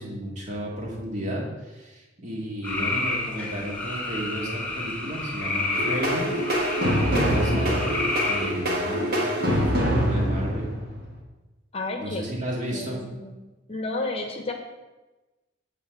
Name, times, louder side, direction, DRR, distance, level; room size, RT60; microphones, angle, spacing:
voice 1, 0.0-6.3 7.0-7.9 8.2-10.7 12.0-13.0, equal, 40° right, -3 dB, 2.1 m, -33 dB
sound 1, 2.6-8.5, left 2 dB, 10° left, 1.4 m, -30 dB
sound 2, 5.7-11.2, equal, 55° right, 1.7 m, -25 dB
voice 2, 11.7-12.3 12.7-13.3 13.7-14.5, left 2 dB, 30° left, 3 dB, 0.9 m, -31 dB
8.6 x 4.2 x 7.1 m, 1.1 s
head